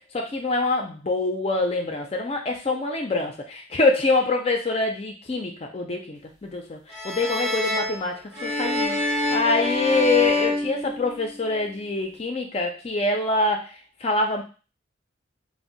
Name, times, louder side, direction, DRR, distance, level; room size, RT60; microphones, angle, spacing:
voice 1, 0.1-6.8 7.0-13.7 14.0-14.4, left 3 dB, 30° left, 3 dB, 0.4 m, -25 dB
sound 1, 6.9-11.5, left 2 dB, 55° right, 0.9 m, -26 dB
2.6 x 2.0 x 3.8 m, 0.34 s
head